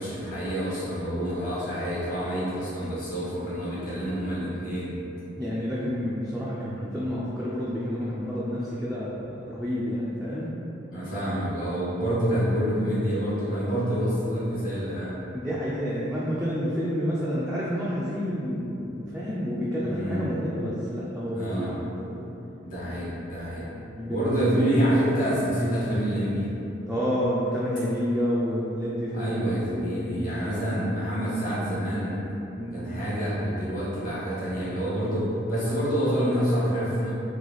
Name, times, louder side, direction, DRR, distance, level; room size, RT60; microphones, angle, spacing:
voice 1, 0.0-4.9 10.9-15.2 19.8-20.2 21.3-21.7 22.6-23.7 24.1-26.5 29.1-32.2 32.7-37.1, equal, 45° left, -9 dB, 1.4 m, -27 dB
voice 2, 5.4-10.5 15.3-22.3 24.0-24.5 26.9-29.4 29.6-30.8 32.6-33.0, equal, 5° right, -9 dB, 0.4 m, -29 dB
3.3 x 3.2 x 3.9 m, 3.0 s
head